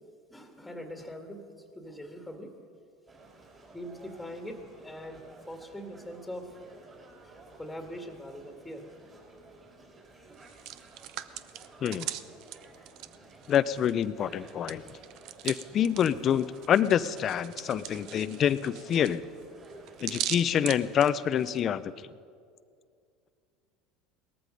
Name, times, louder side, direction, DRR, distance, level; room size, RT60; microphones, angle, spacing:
voice 1, 0.3-1.5 1.8-2.5 3.7-6.5 7.2-7.3 7.6-8.8, equal, 5° left, 4 dB, 2.0 m, -42 dB
sound 1, 3.1-21.0, right 2 dB, 30° right, 4.9 m, -53 dB
Hands, 10.3-14.0 14.3-21.6, right 13 dB, 60° right, 0.7 m, -40 dB
voice 2, 13.5-14.8 15.4-19.2 20.0-21.9, left 9 dB, 45° left, 16 dB, 0.5 m, -26 dB
18.5 x 14.0 x 5.3 m, 2.3 s
supercardioid pair, 100°, 0 cm